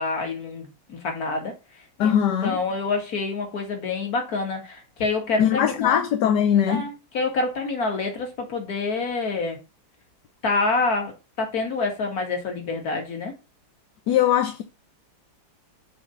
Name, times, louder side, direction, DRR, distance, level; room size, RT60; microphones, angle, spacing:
voice 1, 0.0-1.5 2.0-2.2 2.4-6.1 6.7-9.6 10.4-13.3, left 3 dB, 50° left, 2.2 m, -27 dB
voice 2, 2.0-2.6 5.4-6.8 14.1-14.6, left 9 dB, 65° left, 1.3 m, -20 dB
7.1 x 3.5 x 5.6 m
omnidirectional pair, 2.1 m